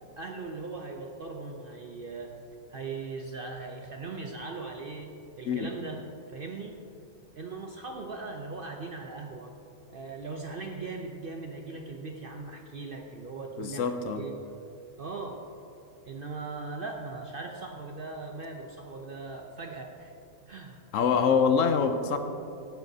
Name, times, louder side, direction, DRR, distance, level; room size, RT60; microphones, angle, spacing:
voice 1, 0.1-2.3 2.7-6.0 6.3-6.7 7.4-9.5 9.9-14.7 15.0-15.4 16.1-20.1 20.5-20.8, right 3 dB, 55° right, 2 dB, 0.6 m, -39 dB
voice 2, 13.6-14.3 20.9-22.2, left 6 dB, 70° left, 7 dB, 0.9 m, -25 dB
14.5 x 9.1 x 2.7 m, 2.7 s
omnidirectional pair, 1.5 m